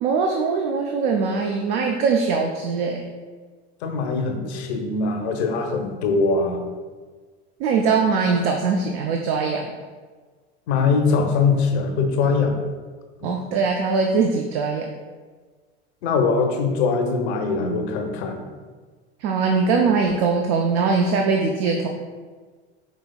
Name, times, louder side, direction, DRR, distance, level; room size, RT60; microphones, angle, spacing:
voice 1, 0.0-3.0 7.6-9.7 13.2-14.9 19.2-21.9, right 4 dB, 60° right, 2 dB, 0.5 m, -21 dB
voice 2, 3.8-6.6 10.7-12.6 13.2-13.4 16.0-18.4, left 4 dB, 70° left, 4 dB, 0.7 m, -22 dB
5.2 x 3.0 x 2.2 m, 1.4 s
hypercardioid pair, 80°, 34 cm